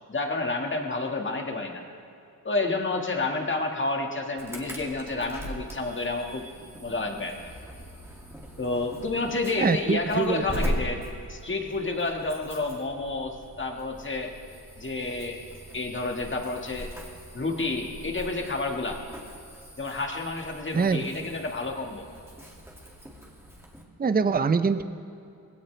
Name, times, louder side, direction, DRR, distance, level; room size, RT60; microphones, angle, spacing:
voice 1, 0.1-1.8 2.4-6.4 6.8-7.4 8.6-11.0 11.3-14.3 14.8-15.4 15.7-16.9 17.3-19.0 19.8-22.1, left 3 dB, 35° left, 2 dB, 1.9 m, -30 dB
Insect / Alarm, 4.4-23.8, equal, 5° right, 2.4 m, -40 dB
voice 2, 9.6-10.4 20.7-21.0 24.0-24.9, right 5 dB, 25° right, 11 dB, 0.6 m, -24 dB
20.0 x 17.0 x 3.4 m, 2.6 s
wide cardioid pair, 95°, 34 cm